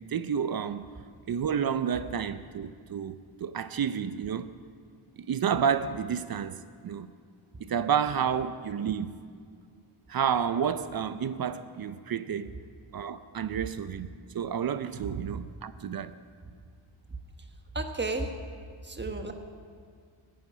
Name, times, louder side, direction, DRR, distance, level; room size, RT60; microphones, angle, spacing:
voice 1, 0.1-0.8 1.3-4.5 5.2-7.1 7.6-9.2 10.1-12.5 12.9-16.1, right 7 dB, 50° right, 0.6 m, -30 dB
voice 2, 17.7-18.3 18.8-19.3, right 3 dB, 20° right, 1.3 m, -32 dB
14.5 x 9.4 x 8.5 m
cardioid pair, 105°, 47 cm